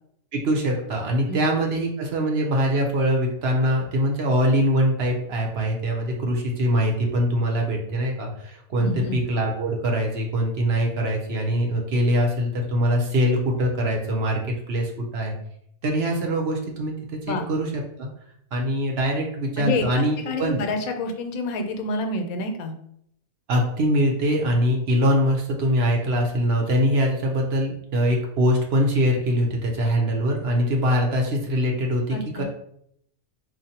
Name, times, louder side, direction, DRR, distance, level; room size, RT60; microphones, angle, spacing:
voice 1, 0.3-15.3 15.8-18.1 18.5-20.6 23.5-32.4, equal, 55° right, 1 dB, 0.8 m, -23 dB
voice 2, 8.8-9.2 17.2-17.5 19.6-22.7 32.1-32.4, left 2 dB, 85° left, 5 dB, 1.1 m, -28 dB
4.4 x 2.5 x 2.8 m, 0.72 s
omnidirectional pair, 1.5 m